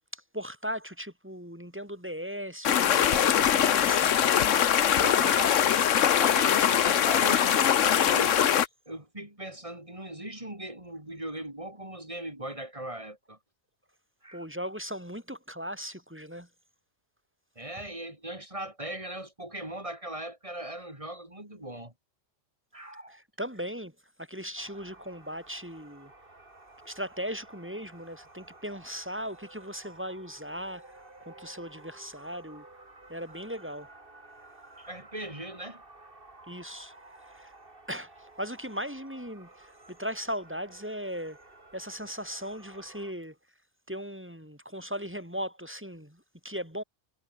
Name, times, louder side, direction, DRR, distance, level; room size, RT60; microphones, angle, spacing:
voice 1, 0.1-4.3 5.0-5.3 14.3-16.5 23.4-23.9 24.2-26.1 26.9-32.6 33.1-33.9 36.5-36.9 37.3-37.5 37.9-41.4 41.7-43.3 43.9-46.8, equal, 10° right, 6.2 m, -38 dB
sound 1, 2.6-8.7, left 9 dB, 80° left, 1.3 m, -22 dB
voice 2, 5.2-5.8 6.2-8.5 8.9-13.4 14.2-14.5 17.6-21.9 22.7-23.2 34.8-35.8, right 1 dB, 25° right, 5.6 m, -39 dB
sound 2, 24.6-43.1, right 2 dB, 45° right, 3.8 m, -53 dB
omnidirectional pair, 1.3 m